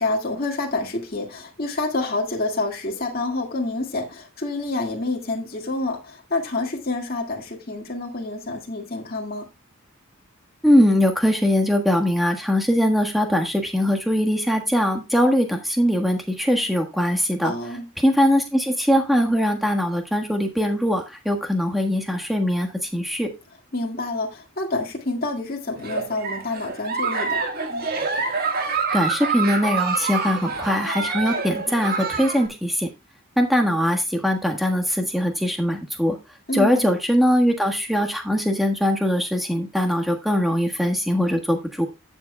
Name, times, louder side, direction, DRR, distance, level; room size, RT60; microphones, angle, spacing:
voice 1, 0.0-9.5 17.4-17.9 23.7-27.4 36.5-36.9, left 2 dB, 45° left, 1.9 m, -28 dB
voice 2, 10.6-17.5 18.0-23.3 28.9-32.9 33.4-36.2 36.5-41.9, equal, ahead, 1.4 m, -21 dB
Giggle, 25.8-32.5, right 4 dB, 45° right, 1.6 m, -26 dB
15.0 x 7.2 x 2.2 m
head